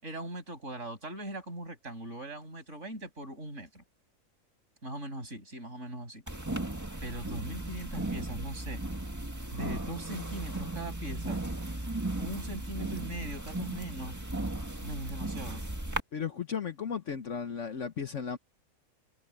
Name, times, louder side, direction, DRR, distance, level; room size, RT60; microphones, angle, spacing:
voice 1, 0.0-3.8 4.8-6.2 7.0-8.8 9.5-11.4 12.2-14.2 14.8-15.6, right 1 dB, 45° right, 6.7 m, -40 dB
sound 1, 6.3-16.0, right 2 dB, 10° right, 1.7 m, -36 dB
voice 2, 16.1-18.4, left 6 dB, 55° left, 1.2 m, -35 dB
omnidirectional pair, 1.7 m